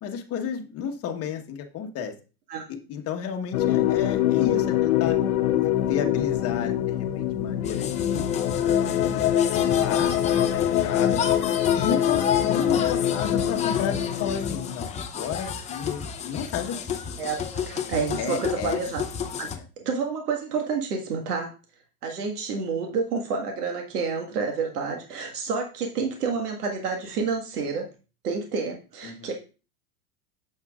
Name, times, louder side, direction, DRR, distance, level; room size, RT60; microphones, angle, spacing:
voice 1, 0.0-2.1 2.7-5.2 5.5-8.2 8.7-9.2 9.5-11.2 11.7-16.9 18.2-18.8 19.5-19.6 29.0-29.3, left 7 dB, 30° left, 3 dB, 1.3 m, -32 dB
sound 1, 3.5-14.7, left 11 dB, 65° left, 0.9 m, -24 dB
sound 2, 7.6-19.6, left 7 dB, 15° left, 0.6 m, -32 dB
voice 2, 17.7-19.0 19.4-19.5 19.8-21.5 22.0-27.9 28.2-29.3, right 5 dB, 75° right, 2 dB, 1.7 m, -29 dB
8.7 x 7.5 x 2.4 m, 0.34 s
hypercardioid pair, 115°, 47 cm